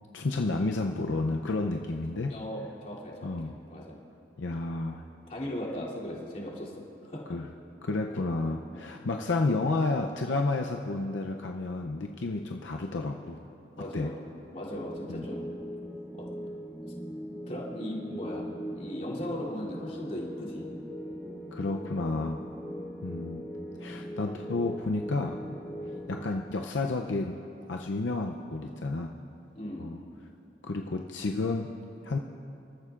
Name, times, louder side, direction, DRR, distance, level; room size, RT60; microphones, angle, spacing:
voice 1, 0.1-2.3 3.2-3.5 4.4-5.0 7.3-7.5 7.8-13.4 13.9-14.1 15.1-15.3 21.5-22.4 23.0-23.4 23.8-25.4 26.1-27.4 27.7-29.1 29.8-30.0 30.6-31.7 32.0-32.2, left 3 dB, 80° left, 2 dB, 0.6 m, -31 dB
voice 2, 2.3-4.0 5.3-6.7 7.0-7.2 8.7-8.8 13.8-15.5 16.1-16.3 16.8-16.9 17.5-18.5 18.7-20.7 29.5-29.9, left 1 dB, 40° left, -6 dB, 2.9 m, -38 dB
sound 1, 14.7-26.2, equal, 5° left, 0.8 m, -40 dB
27.0 x 13.5 x 2.5 m, 2.7 s
head